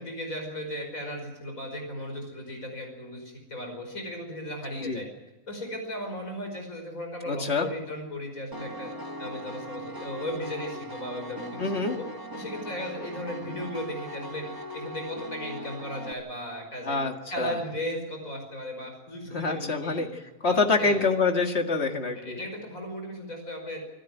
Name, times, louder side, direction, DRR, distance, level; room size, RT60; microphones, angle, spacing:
voice 1, 0.0-5.0 5.5-8.9 9.2-12.0 12.3-14.4 14.7-17.0 17.3-20.0 20.4-21.0 22.1-23.8, equal, 80° left, 3 dB, 5.7 m, -36 dB
voice 2, 7.3-7.7 11.6-12.0 16.9-17.6 19.3-20.1 20.4-22.4, left 3 dB, 50° left, 5 dB, 2.2 m, -26 dB
Piano, 8.5-16.1, equal, 15° right, 1.6 m, -39 dB
26.0 x 12.5 x 9.2 m, 1.1 s
omnidirectional pair, 1.4 m